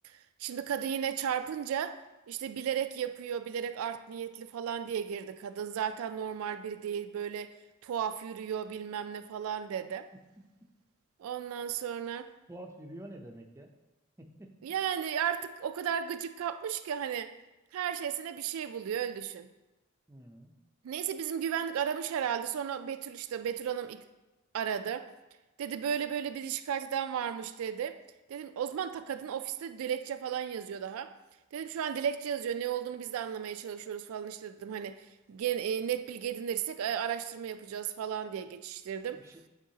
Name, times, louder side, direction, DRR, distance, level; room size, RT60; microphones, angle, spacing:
voice 1, 0.0-2.0 2.3-7.5 7.8-10.1 11.2-12.3 14.6-17.3 17.7-19.5 20.8-24.0 24.5-25.1 25.6-28.0 28.3-31.1 31.5-39.2, right 8 dB, 80° right, 0.3 m, -34 dB
voice 2, 12.5-13.7 14.2-14.5 20.1-20.5 39.1-39.5, right 1 dB, 15° right, 0.5 m, -48 dB
9.0 x 3.9 x 2.8 m
head